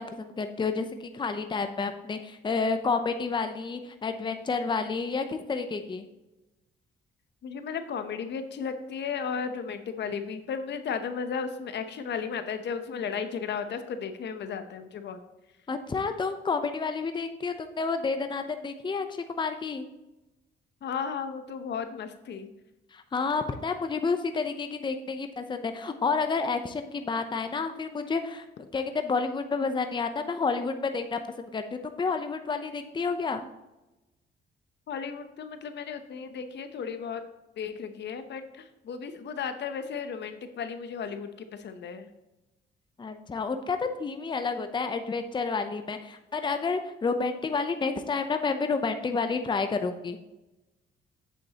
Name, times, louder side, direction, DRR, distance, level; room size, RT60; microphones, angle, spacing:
voice 1, 0.0-6.0 15.7-19.9 22.9-28.5 28.7-33.5 43.0-50.2, left 4 dB, 25° left, 8 dB, 0.7 m, -30 dB
voice 2, 7.4-15.2 20.8-22.5 34.9-37.2 37.6-42.1, left 6 dB, 60° left, 9 dB, 0.8 m, -34 dB
8.1 x 7.4 x 2.9 m, 0.99 s
cardioid pair, 90°, 20 cm